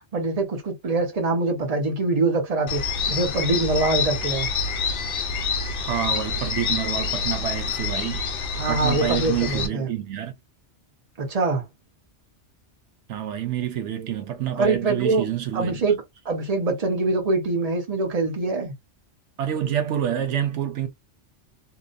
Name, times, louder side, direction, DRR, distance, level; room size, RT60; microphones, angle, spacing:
voice 1, 0.1-2.8 3.1-4.5 8.6-9.9 11.2-11.6 14.6-15.2 15.5-18.7, right 3 dB, 35° right, 1.0 m, -24 dB
sound 1, 2.7-9.7, left 5 dB, 65° left, 0.8 m, -27 dB
voice 2, 5.8-10.3 13.1-15.8 19.4-20.9, right 10 dB, 85° right, 1.0 m, -28 dB
2.8 x 2.1 x 2.5 m
omnidirectional pair, 1.2 m